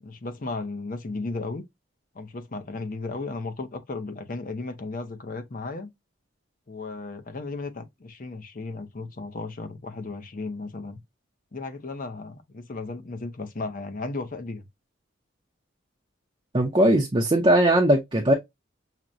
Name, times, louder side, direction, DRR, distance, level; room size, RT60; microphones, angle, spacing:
voice 1, 0.0-1.6 2.1-5.9 6.7-11.0 11.5-14.7, left 3 dB, 45° left, 0.6 m, -35 dB
voice 2, 16.5-18.3, right 1 dB, 25° right, 0.6 m, -19 dB
5.8 x 2.1 x 2.5 m
head